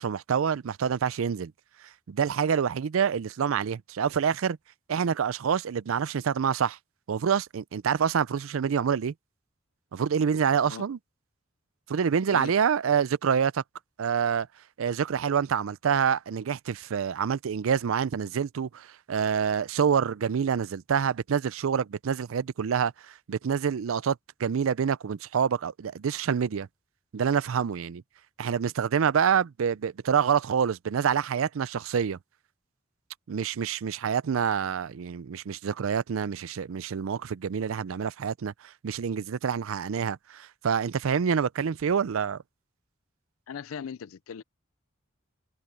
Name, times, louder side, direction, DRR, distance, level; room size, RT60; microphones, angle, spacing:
voice 1, 0.0-1.5 2.1-4.6 4.9-6.8 7.1-9.1 9.9-11.0 11.9-13.6 14.0-14.5 14.8-26.7 27.1-28.0 28.4-32.2 33.3-42.4, right 7 dB, 75° right, 0.4 m, -27 dB
voice 2, 43.5-44.4, left 7 dB, 80° left, 0.4 m, -39 dB
head